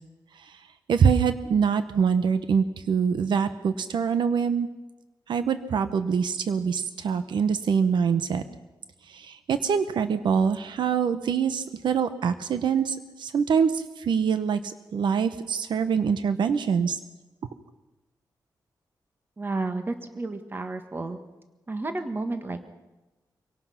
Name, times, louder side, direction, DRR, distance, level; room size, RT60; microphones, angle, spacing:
voice 1, 0.3-4.7 5.3-8.4 9.1-17.0, right 6 dB, 85° right, 11 dB, 0.9 m, -24 dB
voice 2, 19.4-21.2 21.7-22.7, right 2 dB, 25° right, 8 dB, 1.6 m, -31 dB
25.0 x 17.5 x 5.9 m, 1.1 s
wide cardioid pair, 130°, 8 cm